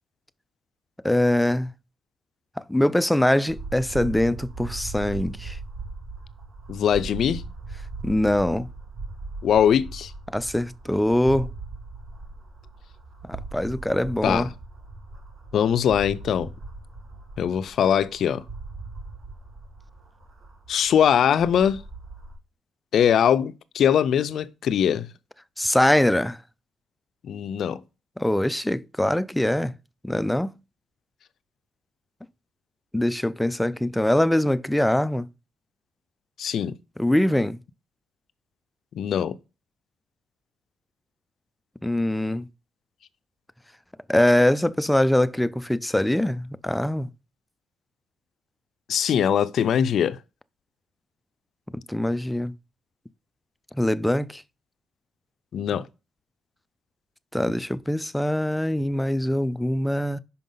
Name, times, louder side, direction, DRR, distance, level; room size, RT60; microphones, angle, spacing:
voice 1, 1.0-1.7 2.6-5.6 8.0-8.7 10.3-11.5 13.2-14.5 25.6-26.4 28.2-29.7 30.0-30.5 32.9-35.3 37.0-37.6 41.8-42.5 44.1-47.1 51.7-52.5 53.7-54.4 57.3-60.2, left 1 dB, 5° left, 0.4 m, -23 dB
sound 1, 3.5-22.3, right 3 dB, 50° right, 1.9 m, -39 dB
voice 2, 6.7-7.4 9.4-10.1 14.2-14.5 15.5-16.5 17.4-18.4 20.7-21.8 22.9-25.1 27.2-27.8 36.4-36.8 38.9-39.4 48.9-50.2 55.5-55.9, left 8 dB, 65° left, 0.4 m, -22 dB
5.8 x 5.3 x 3.8 m
cardioid pair, 90°, 0 cm